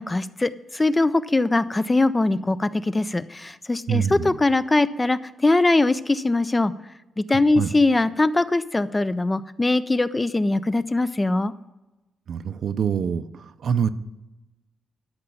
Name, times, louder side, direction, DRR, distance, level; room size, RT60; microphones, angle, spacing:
voice 1, 0.0-6.7 7.2-11.5, left 2 dB, 15° left, 14 dB, 0.3 m, -21 dB
voice 2, 3.9-4.3 7.6-7.7 12.3-13.2 13.6-13.9, right 7 dB, 50° right, 13 dB, 0.5 m, -24 dB
12.5 x 5.7 x 7.0 m, 1.0 s
wide cardioid pair, 165°, 0 cm